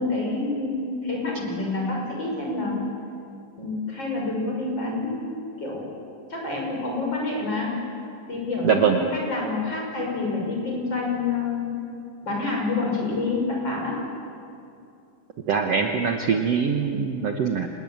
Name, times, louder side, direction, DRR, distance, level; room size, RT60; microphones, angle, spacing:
voice 1, 0.0-2.8 3.6-5.3 5.6-5.9 6.3-7.8 8.3-11.8 12.2-14.0, left 3 dB, 30° left, -1 dB, 6.8 m, -28 dB
voice 2, 8.6-9.0 15.5-17.7, right 6 dB, 60° right, 4 dB, 1.9 m, -22 dB
27.0 x 20.5 x 8.9 m, 2.5 s
omnidirectional pair, 3.9 m